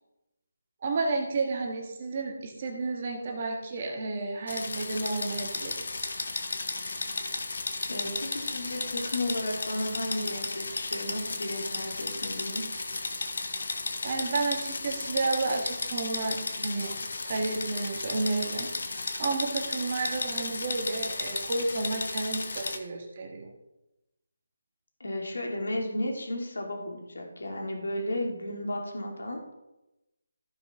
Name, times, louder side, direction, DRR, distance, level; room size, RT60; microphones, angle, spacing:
voice 1, 0.8-6.2 14.0-17.0 17.2-23.5, right 3 dB, 30° right, 1 dB, 1.4 m, -31 dB
sound 1, 4.5-22.8, left 3 dB, 60° left, 1.2 m, -34 dB
voice 2, 7.9-12.6 25.0-29.4, left 1 dB, 85° left, 1 dB, 2.6 m, -33 dB
14.5 x 5.7 x 3.7 m, 0.96 s
hypercardioid pair, 175°, 0 cm